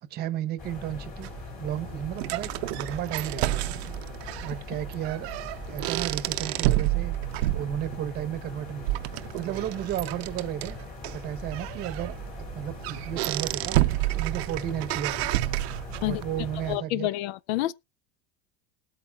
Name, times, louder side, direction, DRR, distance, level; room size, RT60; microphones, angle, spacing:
voice 1, 0.0-1.3 1.6-3.8 4.4-5.3 5.7-7.2 7.5-10.8 11.1-12.2 12.5-13.8 14.1-15.5 16.0-17.1, right 11 dB, 30° right, 0.9 m, -33 dB
sound 1, 0.6-16.8, left 4 dB, 25° left, 2.7 m, -41 dB
sound 2, 1.2-16.2, right 17 dB, 85° right, 0.7 m, -30 dB
voice 2, 16.7-17.7, left 15 dB, 75° left, 0.5 m, -28 dB
20.0 x 8.4 x 2.3 m
cardioid pair, 170°, 31 cm